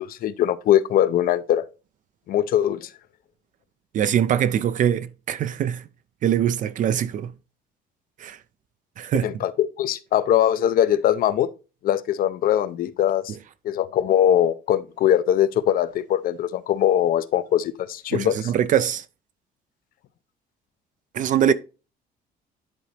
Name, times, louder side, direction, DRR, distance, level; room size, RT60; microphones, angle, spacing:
voice 1, 0.0-1.6 2.3-2.9 9.2-11.5 11.8-13.4 13.6-18.5 21.5-21.6, left 11 dB, 60° left, 0.6 m, -21 dB
voice 2, 3.9-5.8 6.2-7.3 8.2-8.4 9.0-9.3 18.1-19.0 21.1-21.5, right 10 dB, 50° right, 0.4 m, -22 dB
10.5 x 4.0 x 3.3 m
cardioid pair, 110°, 17 cm